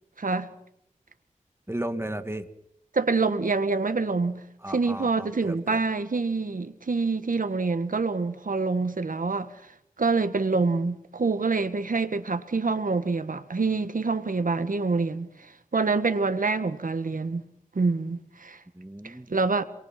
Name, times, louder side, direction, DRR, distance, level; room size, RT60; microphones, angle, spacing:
voice 1, 0.2-0.5 2.9-4.4 4.7-9.5 10.0-17.4 17.7-18.6 19.0-19.6, right 4 dB, 85° right, 1.7 m, -26 dB
voice 2, 1.7-2.5 4.6-5.8 18.7-19.3, right 1 dB, 20° right, 2.2 m, -34 dB
28.5 x 23.0 x 6.0 m
wide cardioid pair, 50°, 14 cm